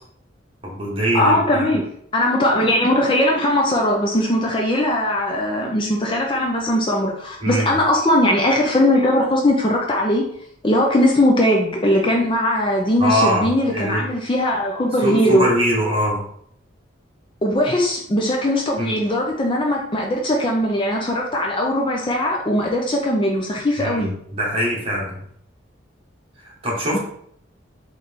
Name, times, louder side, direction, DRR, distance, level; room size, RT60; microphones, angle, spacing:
voice 1, 0.6-1.7 7.4-7.7 13.0-14.0 15.0-16.3 18.8-18.9 23.8-25.2 26.4-27.0, equal, 30° right, -3 dB, 1.3 m, -22 dB
voice 2, 1.1-1.9 2.1-10.2 10.6-15.5 17.4-24.1, left 1 dB, 25° left, 0 dB, 0.5 m, -19 dB
4.0 x 3.2 x 3.4 m, 0.66 s
head